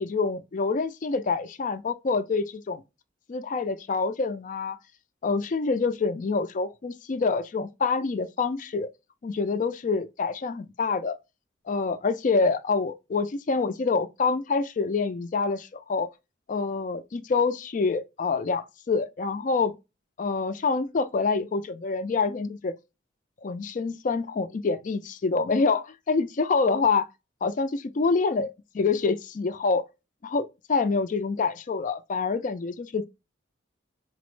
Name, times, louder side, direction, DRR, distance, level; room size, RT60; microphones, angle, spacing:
voice 1, 0.0-2.8 3.3-4.8 5.2-8.9 9.2-11.2 11.7-16.1 16.5-19.7 20.2-22.7 23.4-27.1 27.4-27.7 28.0-28.5 28.7-29.8 30.2-33.0, left 4 dB, 40° left, 0.4 m, -26 dB
4.0 x 2.1 x 3.0 m
head